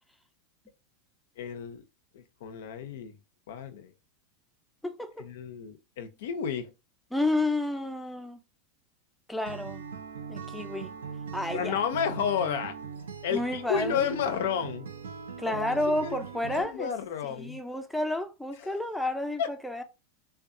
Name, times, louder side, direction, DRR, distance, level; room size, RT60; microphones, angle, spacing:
voice 1, 1.4-1.8 2.1-3.1 3.5-3.9 5.2-6.7 11.5-12.8 13.2-14.9 15.5-15.7 16.0-16.2 16.5-17.6 18.6-18.7 19.4-19.5, left 8 dB, 70° left, 0.4 m, -31 dB
voice 2, 4.8-5.2 7.1-8.4 9.3-9.8 10.3-10.9 11.3-11.8 13.3-14.1 15.4-16.9 17.2-19.8, left 1 dB, ahead, 0.4 m, -31 dB
Acoustic guitar, 9.4-16.6, right 6 dB, 85° right, 0.4 m, -40 dB
2.6 x 2.2 x 2.5 m
hypercardioid pair, 100°, 0 cm